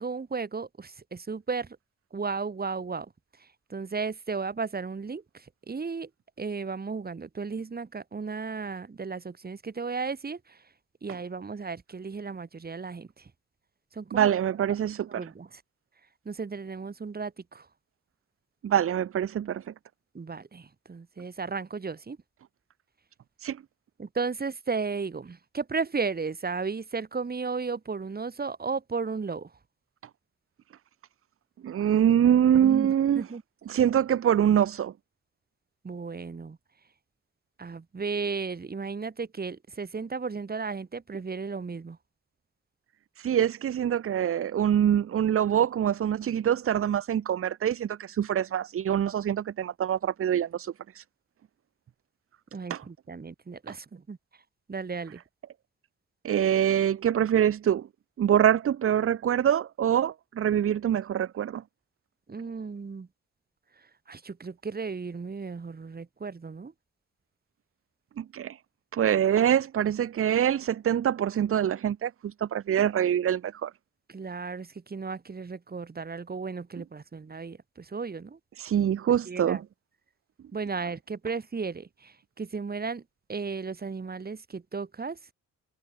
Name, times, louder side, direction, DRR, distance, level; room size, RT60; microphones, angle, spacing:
voice 1, 0.0-1.8 2.1-3.1 3.4-6.1 6.4-10.6 11.0-13.3 13.9-14.3 15.1-15.6 16.3-17.7 20.1-22.2 24.0-29.5 32.6-33.4 35.8-36.6 37.6-42.0 52.5-54.2 54.7-55.2 62.3-63.1 63.8-66.7 74.1-78.4 79.3-79.6 80.5-83.0 83.3-85.2, right 4 dB, 30° right, 5.2 m, -34 dB
voice 2, 14.1-15.3 18.6-19.7 23.4-23.6 31.6-33.2 33.7-34.9 43.2-51.0 52.7-52.8 56.2-57.9 58.2-61.6 68.2-68.6 68.9-73.7 78.6-79.6, right 9 dB, 45° right, 0.9 m, -25 dB
cardioid pair, 90°, 30 cm